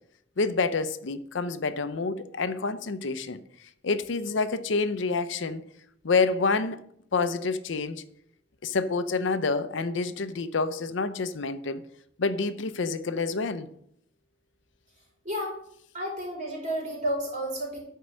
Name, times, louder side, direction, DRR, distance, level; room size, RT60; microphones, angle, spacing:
voice 1, 0.4-3.4 3.8-5.6 6.0-6.8 7.1-8.0 8.6-11.8 12.2-13.7, left 4 dB, 75° left, 0.6 m, -28 dB
voice 2, 15.2-15.6 15.9-17.8, equal, 40° right, 4.5 m, -31 dB
10.5 x 4.6 x 6.3 m
head